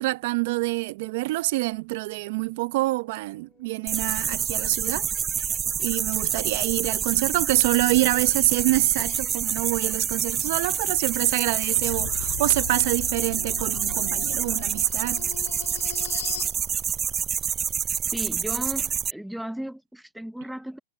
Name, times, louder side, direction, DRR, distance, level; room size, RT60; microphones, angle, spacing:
voice 1, 0.0-5.1 5.3-5.5 5.8-15.3, right 20 dB, 55° right, 0.8 m, -26 dB
sound 1, 2.4-19.2, left 6 dB, 15° left, 5.0 m, -62 dB
sound 2, 3.9-19.1, right 8 dB, 20° right, 0.3 m, -27 dB
sound 3, 11.7-16.6, left 12 dB, 75° left, 1.5 m, -38 dB
voice 2, 18.1-20.8, right 1 dB, ahead, 0.8 m, -35 dB
hypercardioid pair, 145°, 0 cm